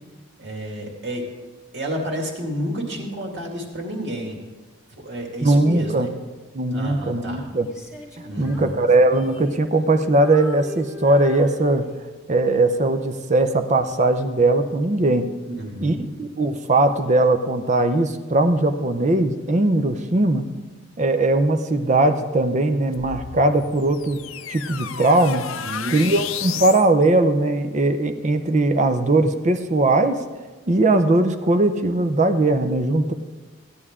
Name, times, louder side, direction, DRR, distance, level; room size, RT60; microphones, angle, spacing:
voice 1, 0.4-1.3 1.7-4.4 5.0-6.1 6.7-7.5 8.2-8.8 15.4-16.1 25.6-26.2, equal, 55° right, 1 dB, 2.2 m, -30 dB
voice 2, 5.4-6.1 6.5-7.7 8.4-11.9 12.3-15.3 15.8-20.5 21.0-24.2 24.5-25.5 25.9-30.2 30.7-33.1, right 2 dB, 35° right, 9 dB, 0.6 m, -19 dB
Female singing, 7.6-9.9 10.2-12.2 12.8-13.0, left 1 dB, 5° right, 1.9 m, -41 dB
sound 1, 22.9-26.9, left 8 dB, 75° left, 0.5 m, -32 dB
15.5 x 9.9 x 3.6 m, 1.3 s
head